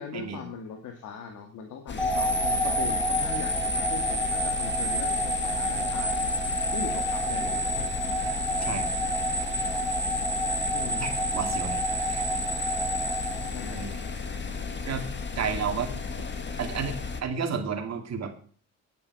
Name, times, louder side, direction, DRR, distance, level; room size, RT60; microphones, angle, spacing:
voice 1, 0.0-6.3 6.7-7.7 10.7-11.1 13.5-13.9, left 6 dB, 75° left, 2 dB, 2.2 m, -39 dB
sound 1, 1.9-17.2, left 5 dB, 35° left, 1.7 m, -35 dB
sound 2, 2.0-14.1, equal, 5° left, 2.1 m, -28 dB
voice 2, 11.0-11.8 12.1-12.2 13.7-14.0 14.9-15.1 15.4-15.9 16.6-18.4, right 6 dB, 60° right, 4 dB, 2.7 m, -31 dB
10.0 x 9.4 x 5.4 m, 0.43 s
cardioid pair, 90°, 30 cm